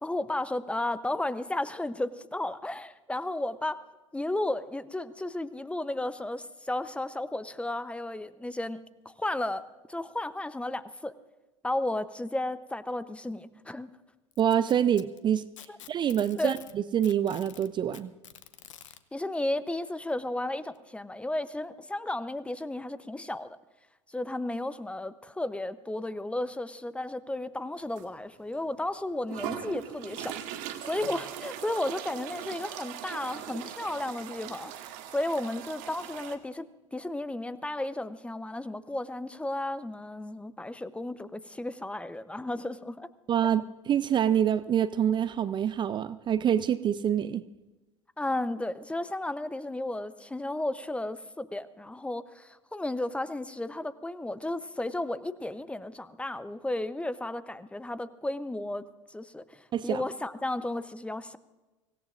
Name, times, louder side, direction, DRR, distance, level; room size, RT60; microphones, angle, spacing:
voice 1, 0.0-3.8 4.1-11.1 11.6-13.9 15.7-15.8 16.4-16.5 19.1-23.6 24.1-43.1 48.2-58.8 59.1-61.4, left 1 dB, 5° left, 15 dB, 0.7 m, -33 dB
Packing tape duct tape, 14.3-16.7 17.0-19.0 20.1-20.2 20.7-20.8 21.7-21.8, left 10 dB, 75° left, 0.9 m, -49 dB
voice 2, 14.4-15.4 15.9-18.1 43.3-47.4 59.7-60.0, right 9 dB, 30° right, 15 dB, 0.5 m, -26 dB
sound 1, 28.0-28.1 28.6-28.7 29.3-36.4, right 11 dB, 55° right, 1.4 m, -40 dB
24.5 x 17.5 x 2.5 m, 1.2 s
figure-of-eight pair, 80°, 16 cm